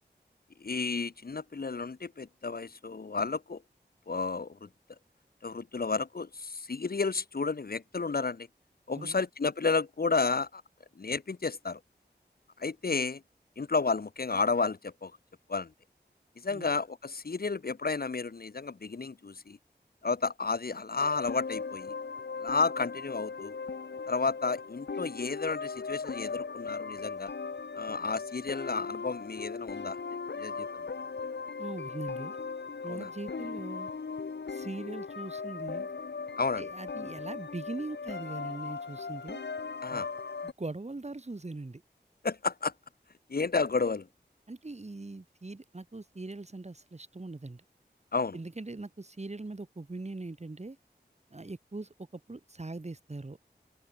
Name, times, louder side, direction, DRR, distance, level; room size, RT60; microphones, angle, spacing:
voice 1, 0.6-3.6 4.1-4.7 5.4-8.5 8.9-10.6 11.0-11.8 12.6-13.2 13.6-15.1 15.5-15.7 16.4-19.6 20.0-21.9 22.4-23.6 24.1-27.3 27.7-30.0 30.4-30.8 32.8-33.1 36.4-36.6 39.8-40.1 42.2-42.7 43.3-44.1 48.1-48.4, left 4 dB, 60° left, 1.1 m, -32 dB
sound 1, 21.0-40.5, left 5 dB, 80° left, 1.4 m, -38 dB
voice 2, 31.6-32.3 32.8-33.9 34.5-35.9 36.6-39.4 39.9-40.0 40.4-41.8 44.5-47.6 48.3-50.8 51.3-53.4, right 2 dB, 40° right, 2.0 m, -41 dB
open air
wide cardioid pair, 60°, 18 cm